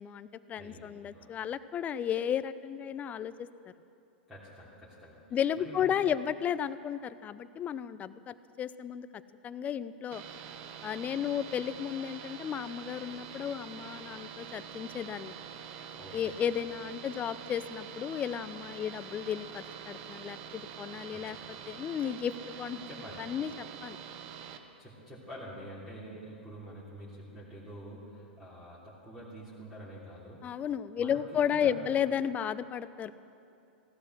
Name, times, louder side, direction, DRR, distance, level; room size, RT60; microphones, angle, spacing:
voice 1, 0.0-3.3 5.3-9.1 9.4-10.2 10.8-15.4 16.1-21.4 21.7-22.3 22.6-22.9 23.2-23.5 23.8-24.0 30.4-33.1, left 9 dB, 25° left, 15 dB, 0.5 m, -33 dB
voice 2, 0.6-1.3 4.3-6.2 15.9-16.4 16.7-16.8 21.1-21.5 22.9-23.3 24.8-30.5 31.0-31.2 31.5-32.0, equal, 5° right, -8 dB, 3.3 m, -47 dB
sound 1, 10.1-24.6, right 8 dB, 45° right, 1.1 m, -45 dB
16.5 x 12.0 x 6.3 m, 2.6 s
hypercardioid pair, 105°, 6 cm